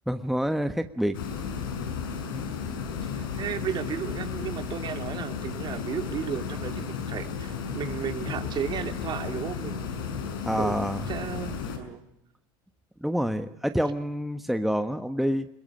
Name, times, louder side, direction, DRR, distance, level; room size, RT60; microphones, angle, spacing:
voice 1, 0.1-1.2 2.2-2.5 10.4-11.1 13.0-15.5, equal, ahead, 9 dB, 1.2 m, -27 dB
sound 1, 1.1-11.8, left 6 dB, 85° left, 6.5 m, -34 dB
voice 2, 2.7-10.1 10.5-10.8 11.1-12.0 13.5-13.6, right 8 dB, 45° right, 6 dB, 3.4 m, -34 dB
22.5 x 21.0 x 8.6 m, 0.84 s
supercardioid pair, 95°, 11 cm